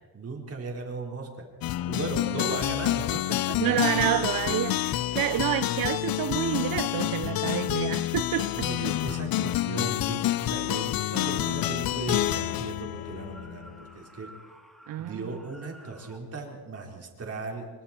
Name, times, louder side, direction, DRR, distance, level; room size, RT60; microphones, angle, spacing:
voice 1, 0.1-1.5 1.9-3.7 4.9-5.0 8.5-14.3 15.0-17.7, right 3 dB, 40° right, 4.1 m, -37 dB
sound 1, 1.6-13.9, left 14 dB, 65° left, 0.6 m, -28 dB
voice 2, 3.6-8.7 14.9-15.1, right 13 dB, 60° right, 0.6 m, -28 dB
sound 2, 12.8-16.3, equal, ahead, 2.0 m, -52 dB
25.0 x 23.0 x 4.4 m
cardioid pair, 145°, 39 cm